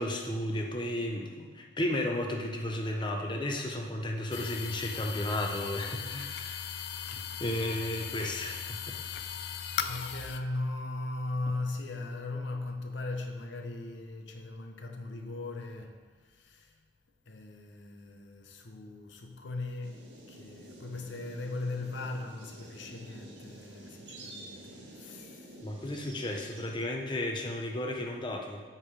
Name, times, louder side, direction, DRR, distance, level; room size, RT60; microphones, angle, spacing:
voice 1, 0.0-6.7 7.1-9.0 25.6-28.6, left 1 dB, 25° left, 0.6 m, -33 dB
sound 1, 4.3-10.4, left 8 dB, 60° left, 0.4 m, -38 dB
voice 2, 9.1-16.8 17.3-25.6, left 2 dB, 75° left, 0.9 m, -39 dB
sound 2, 19.8-26.7, right 1 dB, 65° right, 1.6 m, -49 dB
8.2 x 5.4 x 5.5 m
head